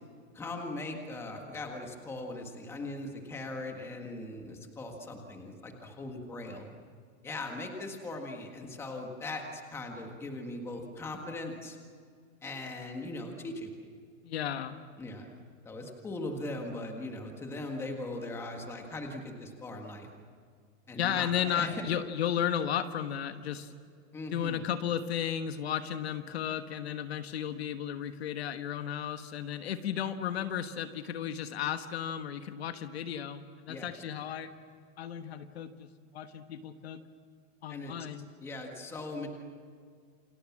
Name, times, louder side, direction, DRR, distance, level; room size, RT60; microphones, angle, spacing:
voice 1, 0.3-6.7 7.2-11.8 12.4-13.7 15.0-15.4 15.6-20.1 20.9-21.7 24.1-24.6 33.7-33.9 37.7-37.9 38.4-39.3, left 2 dB, 5° left, 2 dB, 1.7 m, -39 dB
voice 2, 14.2-14.8 20.9-23.7 24.3-34.5 35.0-35.9 36.1-37.0 37.6-38.3, left 9 dB, 50° left, 9 dB, 1.4 m, -34 dB
28.5 x 26.5 x 7.3 m, 2.1 s
supercardioid pair, 180°, 40 cm